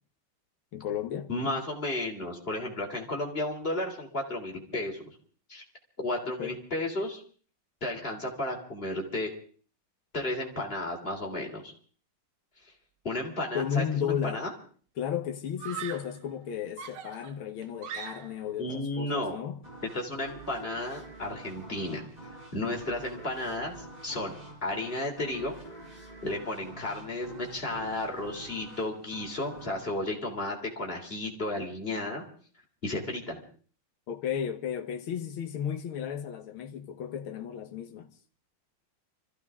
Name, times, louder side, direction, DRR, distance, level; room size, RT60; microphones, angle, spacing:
voice 1, 0.7-1.3 6.4-6.6 13.5-14.5 15.0-19.6 34.1-38.1, left 8 dB, 85° left, 2.1 m, -34 dB
voice 2, 1.3-5.1 5.5-5.6 6.0-7.2 7.8-9.3 10.1-11.7 13.0-14.5 18.6-19.4 19.9-22.0 22.5-23.7 24.0-25.5 26.2-32.2 32.8-33.4, left 1 dB, 25° left, 3.2 m, -33 dB
Screaming, 14.0-14.5 15.6-16.2 16.8-18.5, right 8 dB, 60° right, 1.7 m, -41 dB
sound 1, 19.6-31.1, right 2 dB, 20° right, 3.9 m, -47 dB
26.0 x 15.0 x 3.6 m
omnidirectional pair, 2.3 m